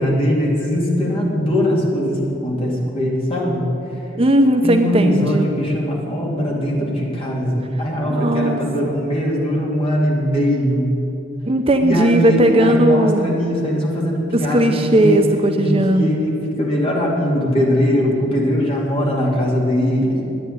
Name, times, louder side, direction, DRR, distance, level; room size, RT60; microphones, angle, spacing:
voice 1, 0.0-3.7 4.6-11.0 11.8-15.2 15.6-20.3, equal, 30° left, -3 dB, 2.7 m, -20 dB
voice 2, 4.2-5.5 8.1-8.6 11.5-13.3 14.3-16.1, right 1 dB, 30° right, 5 dB, 0.6 m, -16 dB
10.5 x 9.0 x 9.4 m, 2.9 s
head